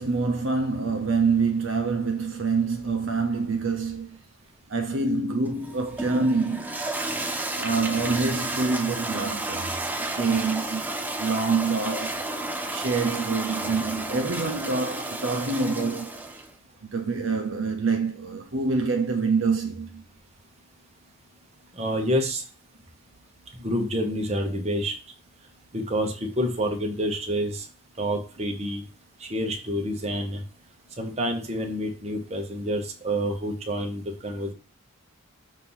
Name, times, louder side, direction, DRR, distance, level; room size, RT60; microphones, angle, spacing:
voice 1, 0.0-4.2 4.7-6.7 7.6-9.7 10.0-10.8 11.2-12.3 12.7-16.2 16.8-20.0, right 4 dB, 60° right, 0.6 m, -26 dB
Toilet flush, 5.5-16.5, right 2 dB, 10° right, 0.4 m, -32 dB
voice 2, 21.7-22.5 23.5-24.9 25.7-27.7 28.0-28.8 29.2-30.4 31.0-34.5, equal, 30° right, 1.0 m, -28 dB
6.3 x 2.7 x 5.5 m
head